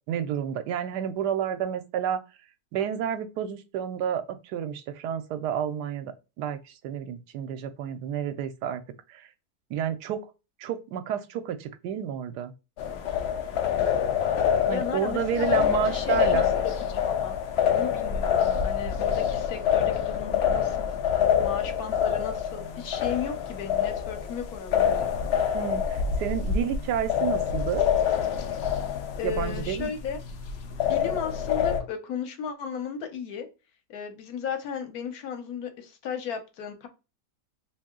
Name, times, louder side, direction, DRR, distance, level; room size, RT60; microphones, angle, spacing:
voice 1, 0.1-2.2 2.7-8.8 9.1-9.3 9.7-10.3 10.6-12.5 14.7-16.5 25.5-27.9 29.2-29.9, right 9 dB, 80° right, 1.1 m, -30 dB
sound 1, 12.8-31.8, left 8 dB, 90° left, 0.5 m, -26 dB
voice 2, 14.7-16.4 16.9-17.4 17.7-20.9 21.4-25.1 29.2-30.2 30.9-33.5 33.9-36.9, left 7 dB, 65° left, 1.2 m, -35 dB
2.8 x 2.7 x 3.6 m
omnidirectional pair, 1.8 m